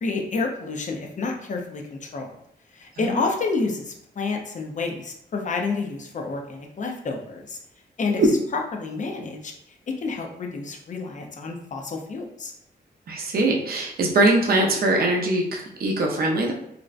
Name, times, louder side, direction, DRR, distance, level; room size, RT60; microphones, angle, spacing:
voice 1, 0.0-2.3 2.8-7.6 8.0-8.2 8.7-9.5 10.0-12.5, left 3 dB, 45° left, 2 dB, 0.4 m, -29 dB
voice 2, 13.1-16.5, right 2 dB, 55° right, -1 dB, 0.5 m, -22 dB
2.5 x 2.1 x 2.3 m, 0.76 s
wide cardioid pair, 105°, 18 cm